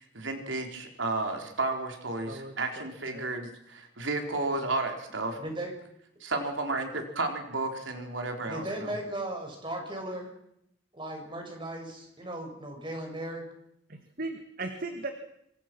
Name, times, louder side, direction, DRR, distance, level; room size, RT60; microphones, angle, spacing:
voice 1, 0.0-5.4 6.2-8.9, right 2 dB, 80° right, 4 dB, 4.1 m, -32 dB
voice 2, 5.4-5.7 8.5-10.3 10.9-13.4, right 1 dB, 25° right, 2 dB, 6.5 m, -37 dB
voice 3, 13.9-15.1, right 2 dB, 45° right, 6 dB, 2.0 m, -37 dB
26.0 x 25.5 x 6.2 m, 0.77 s
head